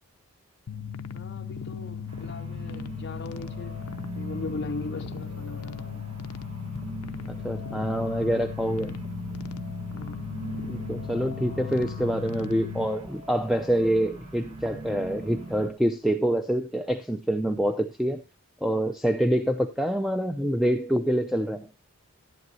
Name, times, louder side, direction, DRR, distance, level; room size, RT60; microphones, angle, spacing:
sound 1, 0.7-12.9, left 7 dB, 90° left, 0.6 m, -37 dB
voice 1, 1.1-3.8 4.1-6.0 9.9-10.2, left 3 dB, 50° left, 0.5 m, -39 dB
sound 2, 2.1-15.7, right 1 dB, 80° right, 2.2 m, -40 dB
voice 2, 7.3-8.9 10.7-18.2 18.6-21.7, equal, ahead, 0.4 m, -26 dB
12.0 x 11.0 x 2.7 m
head